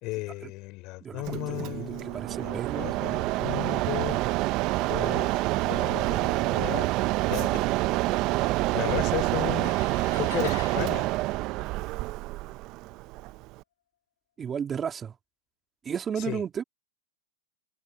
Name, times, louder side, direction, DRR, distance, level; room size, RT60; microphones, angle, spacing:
voice 1, 0.0-4.2 4.9-5.3 5.6-6.9 7.2-7.6 8.7-9.7 10.2-11.1 16.2-16.4, left 22 dB, 45° left, 3.4 m, -35 dB
voice 2, 1.0-3.1 14.4-15.1 15.8-16.6, right 7 dB, 20° right, 2.7 m, -34 dB
Mechanisms, 1.2-13.6, right 20 dB, 40° right, 0.6 m, -27 dB
sound 1, 9.6-12.2, left 10 dB, 80° left, 5.8 m, -45 dB
open air
hypercardioid pair, 130°, 0 cm